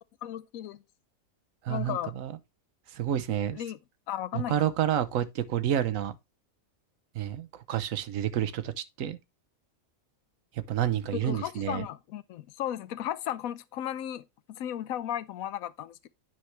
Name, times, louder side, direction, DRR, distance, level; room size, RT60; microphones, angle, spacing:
voice 1, 0.2-0.8 1.7-2.2 3.5-3.8 4.1-4.6 11.1-16.1, left 11 dB, 85° left, 1.1 m, -35 dB
voice 2, 1.6-2.3 2.9-3.6 4.3-6.1 7.1-9.2 10.7-11.9, right 10 dB, 75° right, 1.1 m, -29 dB
9.2 x 5.8 x 3.1 m
omnidirectional pair, 1.4 m